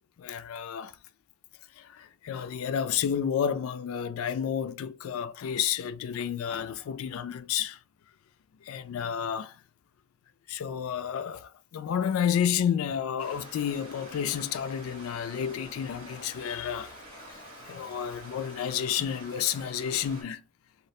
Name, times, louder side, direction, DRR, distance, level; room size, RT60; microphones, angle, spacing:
voice 1, 0.2-1.0 1.7-7.8 8.6-9.6 10.5-20.4, left 8 dB, 85° left, 0.3 m, -31 dB
Stream, 13.2-20.2, equal, 25° right, 1.3 m, -47 dB
3.1 x 2.4 x 2.7 m
head